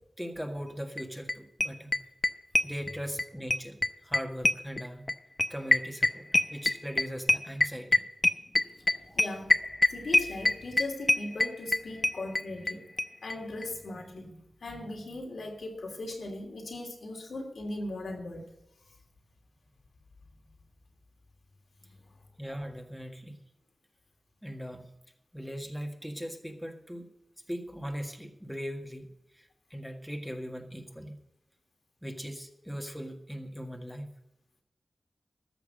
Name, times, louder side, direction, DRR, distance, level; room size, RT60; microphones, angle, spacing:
voice 1, 0.2-2.0 2.6-5.1 5.5-8.0 9.1-9.4 22.4-23.4 24.4-24.9 25.3-27.1 27.5-31.1 32.0-34.1, equal, 5° right, 3 dB, 1.7 m, -39 dB
sound 1, 1.0-1.1 1.3-1.4 1.6-3.2 3.5-12.7 13.0-13.1 13.3-13.4 13.6-13.7, left 2 dB, 30° left, 0.7 m, -24 dB
voice 2, 9.2-9.6 9.9-12.9 13.2-18.4 21.9-22.0, left 2 dB, 85° left, 1 dB, 2.9 m, -38 dB
14.0 x 6.0 x 8.8 m, 0.84 s
wide cardioid pair, 75°, 0 cm